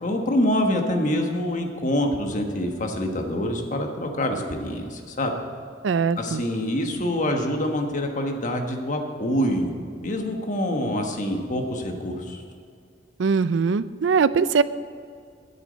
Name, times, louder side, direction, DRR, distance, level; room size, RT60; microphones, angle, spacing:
voice 1, 0.0-5.3 6.2-9.7 10.0-12.4, left 1 dB, 45° left, 3 dB, 1.3 m, -26 dB
voice 2, 5.8-6.4 13.2-14.6, right 5 dB, 85° right, 15 dB, 0.4 m, -21 dB
9.6 x 8.2 x 7.9 m, 2.2 s
head